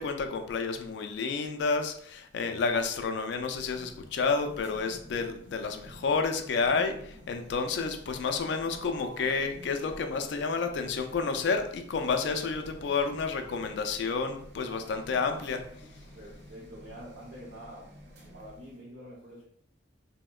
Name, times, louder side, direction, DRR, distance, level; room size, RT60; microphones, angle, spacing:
voice 1, 0.0-15.6, left 4 dB, 60° left, 6 dB, 0.3 m, -30 dB
sound 1, 3.2-18.8, equal, 55° right, 0.5 m, -50 dB
voice 2, 16.2-17.9 18.3-19.4, equal, 85° right, -8 dB, 0.8 m, -46 dB
3.5 x 2.0 x 2.3 m, 0.64 s
head